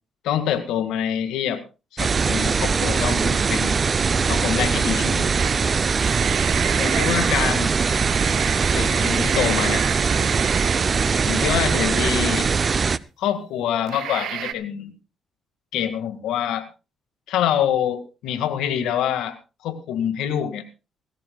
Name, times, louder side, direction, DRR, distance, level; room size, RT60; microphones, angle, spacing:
voice 1, 0.2-1.6 1.9-3.8 4.2-5.3 6.8-7.7 8.7-9.8 11.3-12.5 13.2-14.9 15.7-16.7 17.3-19.4 19.6-20.6, left 9 dB, 85° left, 9 dB, 1.9 m, -25 dB
sound 1, 2.0-13.0, right 5 dB, 40° right, 0.6 m, -21 dB
sound 2, 5.4-5.6 5.9-12.7 13.3-13.4 13.9-14.5, right 11 dB, 80° right, 1.0 m, -31 dB
18.5 x 16.0 x 2.4 m, 0.30 s
cardioid pair, 90°, 0 cm